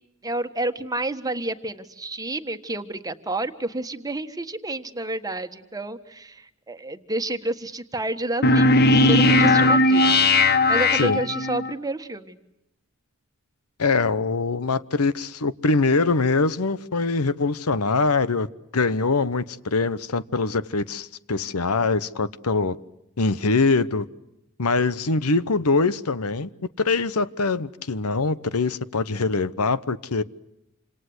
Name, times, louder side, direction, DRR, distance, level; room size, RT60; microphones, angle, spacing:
voice 1, 0.2-12.4, right 2 dB, 15° right, 1.5 m, -30 dB
sound 1, 8.4-11.7, left 2 dB, 45° left, 1.2 m, -17 dB
voice 2, 13.8-18.5 18.7-22.8 23.2-24.1 24.6-26.5 26.8-30.2, left 3 dB, 80° left, 1.0 m, -23 dB
27.5 x 27.0 x 8.0 m
head